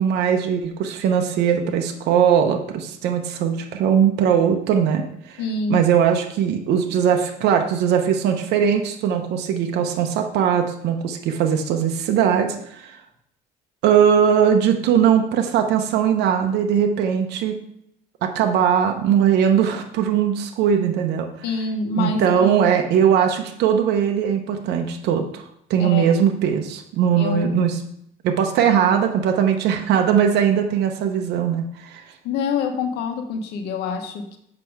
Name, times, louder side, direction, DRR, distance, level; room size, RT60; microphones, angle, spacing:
voice 1, 0.0-5.0 5.3-5.4 5.7-13.0 13.8-17.6 18.2-21.3 22.0-25.4 25.7-27.8 28.2-32.0, right 8 dB, 80° right, 4 dB, 0.9 m, -20 dB
voice 2, 5.4-5.8 21.4-22.7 25.8-26.1 27.2-27.6 32.2-34.4, left 4 dB, 85° left, 5 dB, 1.3 m, -26 dB
7.6 x 5.9 x 4.8 m, 0.74 s
cardioid pair, 110°, 17 cm